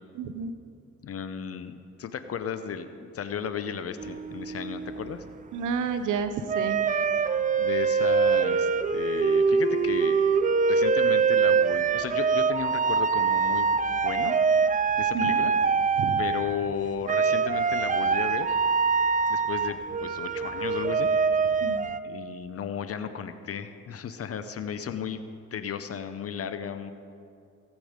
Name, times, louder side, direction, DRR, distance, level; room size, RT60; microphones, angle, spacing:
voice 1, 0.1-0.5 5.5-6.8 15.1-15.4 16.0-16.2 21.6-21.9, right 6 dB, 80° right, 9 dB, 0.9 m, -30 dB
voice 2, 1.0-5.2 7.6-10.4 10.7-13.7 14.0-14.3 15.0-15.6 16.2-18.6 19.3-21.1 22.0-25.2 25.5-26.9, left 7 dB, 50° left, 10 dB, 0.8 m, -34 dB
sound 1, 4.0-5.2 6.5-16.7 17.0-22.0, right 5 dB, 25° right, 0.5 m, -24 dB
17.5 x 8.4 x 5.1 m, 2.4 s
cardioid pair, 90°, 30 cm